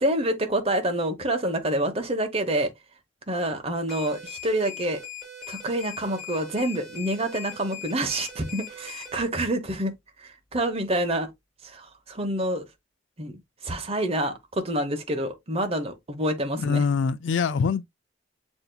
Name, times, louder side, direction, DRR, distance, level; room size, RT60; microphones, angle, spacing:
voice 1, 0.0-2.7 3.3-5.0 5.5-9.9 10.2-11.3 11.6-12.7 13.2-16.8, right 1 dB, 35° right, 0.9 m, -27 dB
sound 1, 3.9-9.2, left 5 dB, 5° left, 3.6 m, -40 dB
voice 2, 16.6-17.8, left 5 dB, 70° left, 0.4 m, -24 dB
7.9 x 2.7 x 2.2 m
head